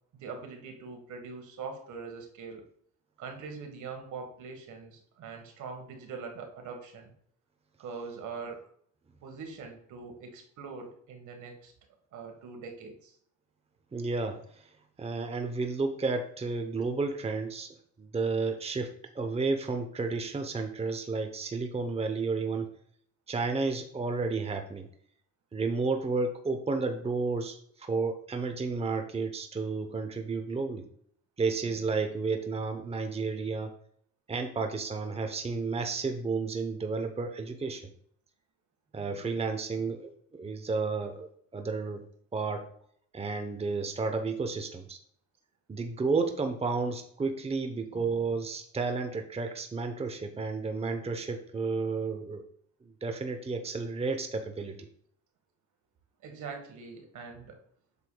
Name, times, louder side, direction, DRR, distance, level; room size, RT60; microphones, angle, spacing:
voice 1, 0.2-2.6 3.2-7.1 7.8-8.7 9.2-11.7 12.1-13.1 56.2-57.6, right 5 dB, 75° right, 3 dB, 1.6 m, -42 dB
voice 2, 13.9-14.4 15.0-17.7 18.0-18.9 19.1-22.7 23.3-24.9 25.5-30.8 31.4-33.7 34.3-37.8 38.9-40.1 40.4-42.0 42.3-42.6 43.1-45.0 45.7-52.4 53.0-54.9, right 4 dB, 20° right, 6 dB, 0.8 m, -32 dB
8.1 x 6.8 x 2.3 m, 0.64 s
cardioid pair, 90°, 30 cm